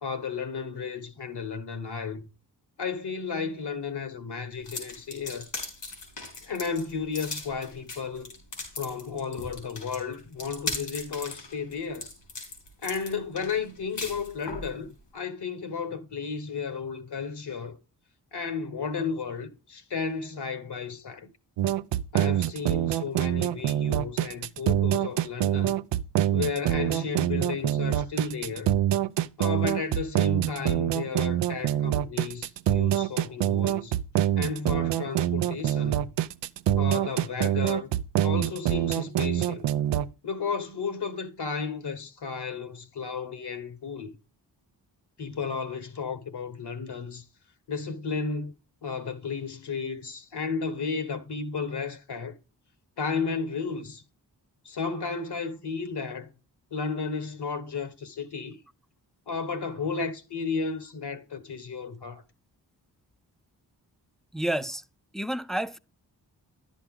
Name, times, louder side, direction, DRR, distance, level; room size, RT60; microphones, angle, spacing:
voice 1, 0.0-2.2 2.8-5.5 6.4-8.3 8.8-12.1 12.8-17.8 18.3-21.3 22.1-25.8 26.3-28.7 29.4-33.9 34.4-36.1 36.8-37.9 38.2-39.7 40.2-44.1 45.2-47.2 47.7-48.5 48.8-52.4 53.0-54.0 54.6-56.3 56.7-58.6 59.3-62.2, left 5 dB, 65° left, 1.5 m, -33 dB
sound 1, 4.6-14.7, left 3 dB, 85° left, 4.8 m, -38 dB
sound 2, 21.6-40.1, right 12 dB, 80° right, 0.6 m, -25 dB
voice 2, 64.3-64.8 65.1-65.8, right 1 dB, ahead, 0.5 m, -29 dB
11.0 x 7.2 x 3.7 m
cardioid pair, 45°, 43 cm